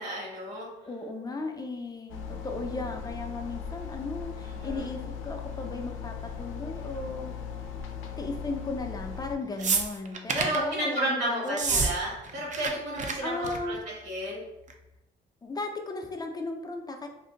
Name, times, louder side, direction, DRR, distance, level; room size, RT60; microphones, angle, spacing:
voice 1, 0.0-0.7 4.4-4.9 10.3-14.4, right 1 dB, 60° right, -3 dB, 1.2 m, -32 dB
voice 2, 0.9-7.3 8.2-11.9 13.2-13.8 15.4-17.1, left 3 dB, 20° left, 3 dB, 0.4 m, -36 dB
sound 1, 2.1-9.4, left 6 dB, 85° left, 0.5 m, -38 dB
sound 2, 9.6-10.6 11.5-11.9 12.2-12.7 13.0-13.1 13.4-13.7 14.7-14.8, right 5 dB, 40° right, 0.4 m, -28 dB
2.6 x 2.1 x 3.7 m, 0.93 s
cardioid pair, 90°, 20 cm